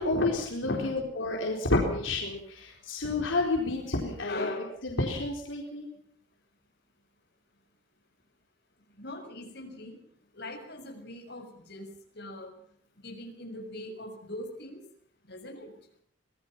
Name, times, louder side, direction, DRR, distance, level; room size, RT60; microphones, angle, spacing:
voice 1, 0.0-5.9, left 2 dB, 80° left, 0 dB, 4.2 m, -30 dB
voice 2, 4.2-4.7 9.0-10.0 10.3-11.9 12.1-12.5 13.0-14.8 15.3-15.7, left 1 dB, 55° left, 3 dB, 6.8 m, -40 dB
25.5 x 19.5 x 6.0 m, 0.65 s
head